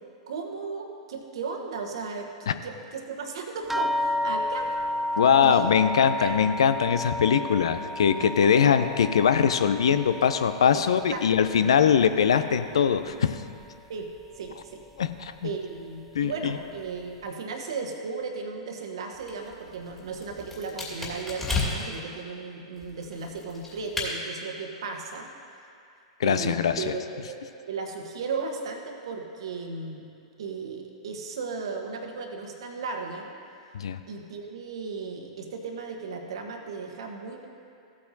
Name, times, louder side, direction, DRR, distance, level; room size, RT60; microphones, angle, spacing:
voice 1, 0.3-4.7 5.4-5.7 6.2-6.4 8.2-8.3 10.7-10.8 11.1-11.3 13.9-14.1 14.4-14.8 15.4-25.3 26.2-27.4 27.7-30.1 30.4-33.3 34.1-37.5, right 4 dB, 70° right, 3 dB, 1.2 m, -35 dB
sound 1, 3.7-12.5 12.8-13.7 14.5-14.6 15.0-15.1, left 1 dB, 5° right, 0.4 m, -33 dB
voice 2, 5.2-13.4 15.0-15.5 16.1-16.3 26.2-26.8 33.7-34.0, left 7 dB, 70° left, 11 dB, 0.5 m, -22 dB
sound 2, 19.1-22.0 22.8-24.1, left 3 dB, 10° left, 2.5 m, -33 dB
15.0 x 8.4 x 2.7 m, 2.5 s
hypercardioid pair, 105°, 3 cm